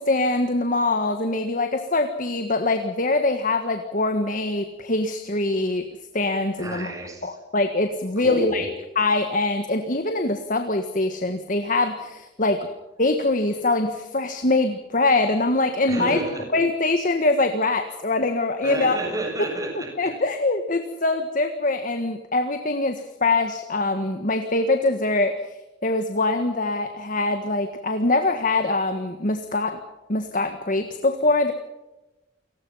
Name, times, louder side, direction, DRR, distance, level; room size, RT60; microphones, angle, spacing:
voice 1, 0.0-5.8 6.1-6.9 7.2-8.7 8.9-12.7 13.0-16.2 16.5-19.0 20.0-25.4 25.8-29.8 30.1-31.5, left 2 dB, 45° left, 7 dB, 1.6 m, -23 dB
voice 2, 6.6-7.4 8.2-8.7 15.9-16.4 18.6-19.9, right 1 dB, 20° right, 0 dB, 7.4 m, -30 dB
29.0 x 20.0 x 5.7 m, 1.0 s
head